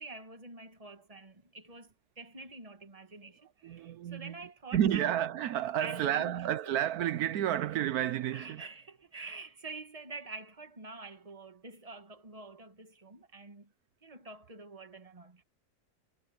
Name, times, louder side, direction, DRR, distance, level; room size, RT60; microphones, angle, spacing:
voice 1, 0.0-5.1 5.8-6.3 8.3-13.7 14.0-15.4, right 3 dB, 25° right, 1.7 m, -47 dB
voice 2, 3.6-4.4 4.7-8.6, right 11 dB, 75° right, 1.1 m, -31 dB
omnidirectional pair, 1.6 m